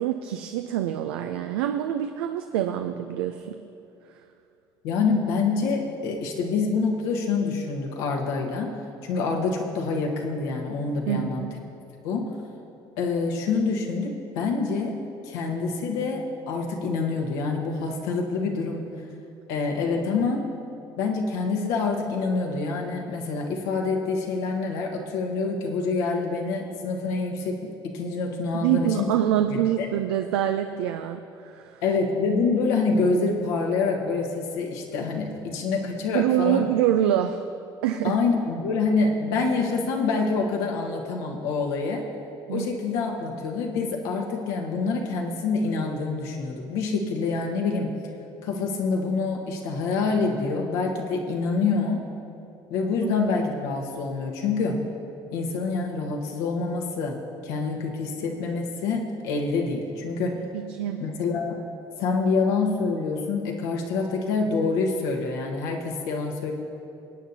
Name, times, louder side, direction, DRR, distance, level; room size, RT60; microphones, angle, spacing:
voice 1, 0.0-3.6 11.1-11.6 28.5-31.8 36.1-37.4 37.8-38.2 42.5-42.7 53.0-53.1 60.5-61.0, right 11 dB, 85° right, 6 dB, 0.4 m, -25 dB
voice 2, 4.8-8.7 9.0-11.5 12.0-12.4 13.0-15.0 15.2-18.9 19.5-20.5 21.0-29.1 29.5-29.9 31.8-36.6 38.0-42.1 42.5-48.0 48.4-52.0 52.7-54.8 55.3-60.5 61.0-61.7 62.0-66.5, left 4 dB, 75° left, 0 dB, 1.5 m, -26 dB
23.0 x 9.2 x 2.8 m, 2.6 s
hypercardioid pair, 60°, 13 cm